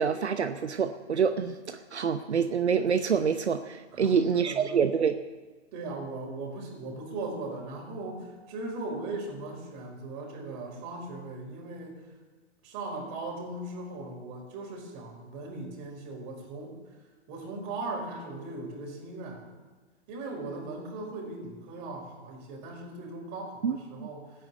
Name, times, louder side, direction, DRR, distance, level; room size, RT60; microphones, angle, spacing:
voice 1, 0.0-5.2 23.6-24.1, right 6 dB, 75° right, 9 dB, 0.9 m, -27 dB
voice 2, 3.9-4.9 5.7-12.0 12.6-16.8 17.3-19.4 20.1-24.3, right 2 dB, 35° right, 0 dB, 5.1 m, -38 dB
15.5 x 9.4 x 8.3 m, 1.3 s
figure-of-eight pair, 115°, 34 cm